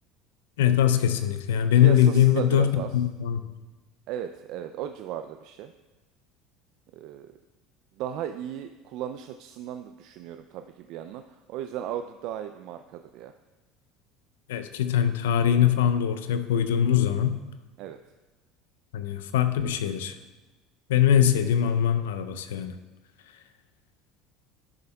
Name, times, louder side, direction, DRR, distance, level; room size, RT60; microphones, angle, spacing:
voice 1, 0.6-3.4 14.5-17.4 18.9-20.1 20.9-22.7, left 9 dB, 85° left, 10 dB, 0.5 m, -22 dB
voice 2, 1.7-2.9 4.1-5.7 6.9-7.3 8.0-11.2 11.5-13.3 17.8-18.0, right 10 dB, 65° right, 8 dB, 0.3 m, -36 dB
11.5 x 6.9 x 2.3 m, 1.2 s
hypercardioid pair, 80°, 0 cm